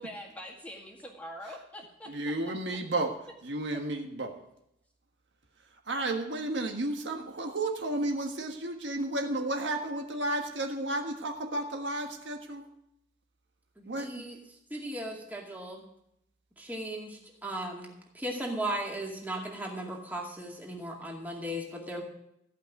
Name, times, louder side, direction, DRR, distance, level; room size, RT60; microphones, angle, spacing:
voice 1, 0.0-2.5 3.7-3.8, equal, 5° left, -1 dB, 2.0 m, -44 dB
voice 2, 2.1-3.1 3.4-4.4 5.9-12.6 13.9-14.2, right 2 dB, 65° right, 3 dB, 1.5 m, -32 dB
voice 3, 13.8-14.4 14.7-15.8 16.6-22.0, right 1 dB, 10° right, -1 dB, 2.2 m, -37 dB
15.0 x 5.7 x 9.1 m, 0.80 s
head